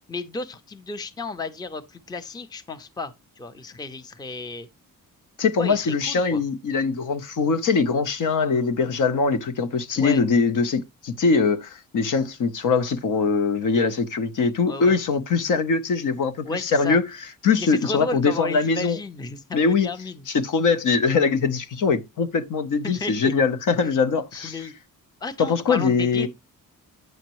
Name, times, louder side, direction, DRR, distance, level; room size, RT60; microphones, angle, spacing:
voice 1, 0.1-4.7 5.6-6.4 9.9-10.2 14.7-14.9 16.4-17.0 17.6-20.3 22.8-23.3 24.3-24.7 25.2-26.3, left 3 dB, 10° left, 0.5 m, -33 dB
voice 2, 5.4-17.0 17.4-19.0 19.5-19.9 20.3-24.6 25.4-26.3, left 5 dB, 60° left, 0.8 m, -22 dB
9.3 x 6.4 x 2.9 m
wide cardioid pair, 170°, 34 cm